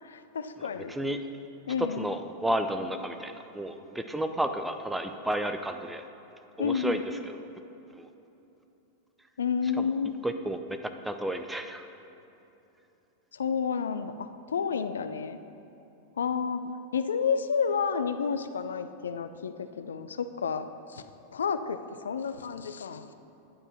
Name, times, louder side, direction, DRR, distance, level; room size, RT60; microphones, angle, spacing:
voice 1, 0.0-1.0 1.7-2.1 6.6-7.0 9.4-10.2 13.3-15.4 16.2-16.6 16.9-21.0 21.3-23.1, left 6 dB, 70° left, 10 dB, 0.4 m, -30 dB
voice 2, 0.6-1.2 1.8-6.0 6.6-7.4 8.0-8.1 9.8-9.9 10.2-10.6 11.0-11.9, right 1 dB, 5° right, 7 dB, 0.5 m, -32 dB
9.6 x 5.3 x 5.6 m, 3.0 s
figure-of-eight pair, 90°, 0 cm